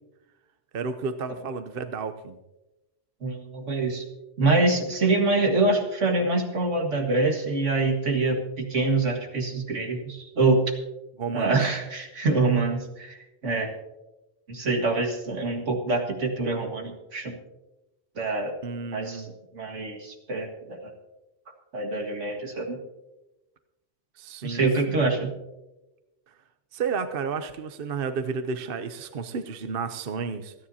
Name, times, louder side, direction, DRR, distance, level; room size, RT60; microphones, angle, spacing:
voice 1, 0.7-2.4 11.2-11.5 18.6-19.3 24.2-25.1 26.7-30.5, right 5 dB, 55° right, 10 dB, 0.8 m, -32 dB
voice 2, 3.2-4.0 4.4-10.6 11.3-13.2 13.4-13.7 14.5-17.4 18.2-18.6 18.9-19.2 19.5-20.9 21.7-22.8 24.4-25.3, right 3 dB, 75° right, 3 dB, 2.1 m, -25 dB
27.0 x 9.9 x 2.8 m, 1.0 s
omnidirectional pair, 1.3 m